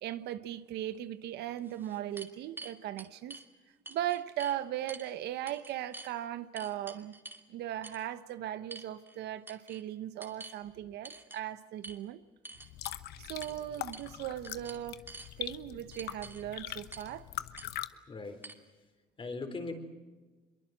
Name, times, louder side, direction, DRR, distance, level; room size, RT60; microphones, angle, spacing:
voice 1, 0.0-3.4 3.9-7.1 7.5-12.2 13.2-15.0 15.4-17.3, right 12 dB, 80° right, 1.1 m, -38 dB
sound 1, 0.9-1.0 1.6-3.5 3.9-4.6 4.9-5.1 5.5-6.1 6.6-7.5 7.8-8.0 8.7-9.2 9.5-9.8 10.2-10.6 11.0-11.4 11.8-12.0 12.4-13.0 13.4-13.6 13.9-14.2 14.4-15.3 15.9-16.4 16.9-17.1 17.6-17.7 18.4-18.5, right 2 dB, 15° right, 2.6 m, -47 dB
sound 2, 12.6-17.9, left 13 dB, 75° left, 1.0 m, -42 dB
voice 2, 18.1-18.5 19.2-19.7, left 3 dB, 30° left, 4.0 m, -39 dB
24.5 x 23.0 x 7.5 m
cardioid pair, 110°, 17 cm